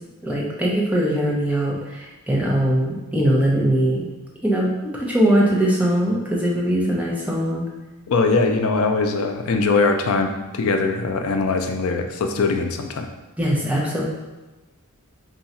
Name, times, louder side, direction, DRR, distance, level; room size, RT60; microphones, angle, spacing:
voice 1, 0.2-4.0 4.4-7.6 13.4-14.0, right 1 dB, 5° right, -4 dB, 0.6 m, -21 dB
voice 2, 8.1-13.1, left 3 dB, 70° left, 5 dB, 0.4 m, -21 dB
3.8 x 2.3 x 4.1 m, 1.1 s
head